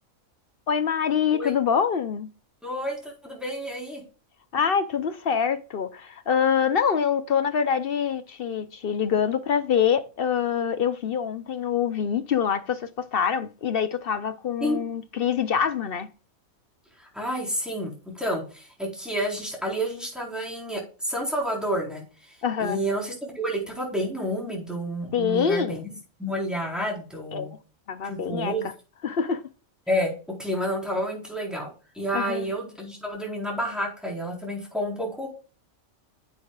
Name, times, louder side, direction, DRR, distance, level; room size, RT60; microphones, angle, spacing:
voice 1, 0.7-2.3 4.5-16.1 22.4-22.8 25.1-25.8 27.3-27.5 27.9-28.5 29.0-29.4 32.1-32.5, left 7 dB, 55° left, 0.7 m, -25 dB
voice 2, 2.6-4.0 14.6-14.8 17.0-22.3 22.6-25.9 26.2-27.5 28.0-28.7 29.9-30.1 30.4-31.7 31.9-35.3, equal, ahead, 4.0 m, -30 dB
10.5 x 8.2 x 2.4 m
omnidirectional pair, 1.4 m